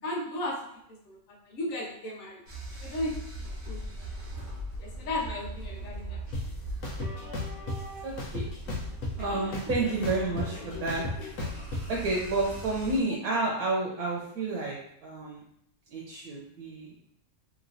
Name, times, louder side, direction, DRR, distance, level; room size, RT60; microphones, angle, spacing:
voice 1, 0.0-0.8 1.1-2.4 2.8-3.8 4.8-6.2, left 1 dB, 70° left, -1 dB, 1.1 m, -35 dB
sound 1, 2.5-13.0, right 1 dB, 40° right, 0.7 m, -40 dB
sound 2, 6.3-6.4 6.8-7.8 8.2-9.2 9.5-11.8, left 2 dB, 90° left, 1.2 m, -33 dB
voice 2, 8.0-8.5 9.2-11.0 11.7-15.4 15.9-17.0, right 2 dB, 85° right, -3 dB, 1.1 m, -30 dB
3.0 x 2.9 x 2.6 m, 0.73 s
omnidirectional pair, 1.5 m